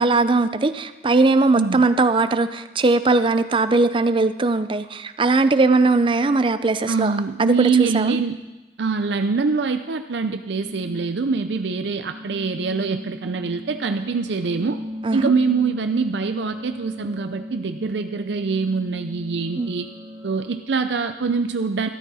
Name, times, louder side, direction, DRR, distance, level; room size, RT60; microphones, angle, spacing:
voice 1, 0.0-7.1 7.4-8.2 15.0-15.3 19.6-19.7, right 3 dB, 30° right, 12 dB, 0.5 m, -19 dB
voice 2, 6.9-8.4 8.8-14.8 15.1-19.9 20.2-21.9, right 4 dB, 75° right, 7 dB, 0.5 m, -24 dB
sound 1, 10.5-20.5, left 1 dB, 10° right, 3.1 m, -37 dB
13.5 x 13.0 x 4.2 m, 1.1 s
head